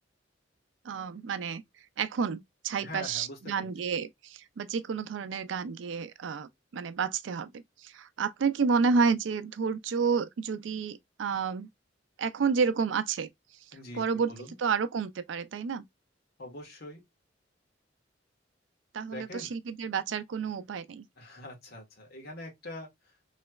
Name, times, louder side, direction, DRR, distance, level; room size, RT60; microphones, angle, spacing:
voice 1, 0.8-1.6 2.0-7.5 7.8-11.7 12.2-13.3 13.9-14.3 14.6-15.8 18.9-21.0, right 5 dB, 75° right, 0.4 m, -30 dB
voice 2, 2.8-3.7 13.7-14.6 16.4-17.0 19.1-19.5 21.2-22.9, left 1 dB, 55° left, 1.4 m, -43 dB
3.1 x 3.0 x 2.3 m
head